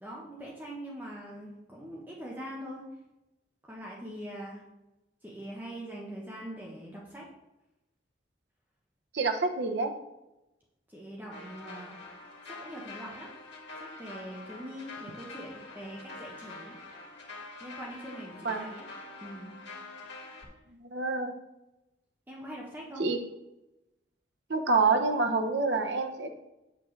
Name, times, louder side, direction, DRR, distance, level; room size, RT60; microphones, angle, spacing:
voice 1, 0.0-2.8 3.7-4.6 5.2-7.2 10.9-12.0 12.6-13.3 13.8-16.7 17.6-18.9 19.2-19.5 22.3-23.1, equal, 10° right, -4 dB, 1.0 m, -42 dB
voice 2, 9.1-9.9 18.4-18.7 20.9-21.3 23.0-23.2 24.5-26.3, right 4 dB, 70° right, 5 dB, 0.8 m, -27 dB
sound 1, 11.3-20.5, left 3 dB, 75° left, 1.9 m, -46 dB
7.0 x 7.0 x 3.2 m, 0.94 s
head